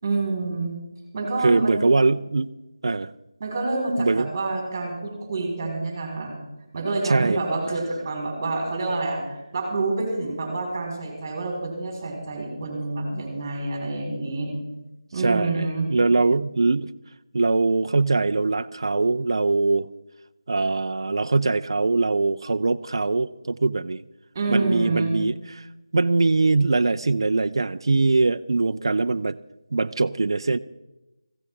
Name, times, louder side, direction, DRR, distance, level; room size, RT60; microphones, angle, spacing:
voice 1, 0.0-0.8 1.1-1.8 3.4-6.3 6.7-9.2 9.5-14.5 15.1-15.9 24.3-25.1, right 3 dB, 25° right, 0 dB, 4.3 m, -27 dB
voice 2, 1.4-2.5 2.8-3.1 4.0-4.3 7.0-7.4 15.2-16.9 17.3-19.9 20.5-24.0 24.5-25.7 25.9-29.4 29.7-30.6, right 3 dB, 60° right, 9 dB, 0.5 m, -22 dB
20.0 x 15.5 x 3.6 m, 0.99 s
figure-of-eight pair, 170°, 3 cm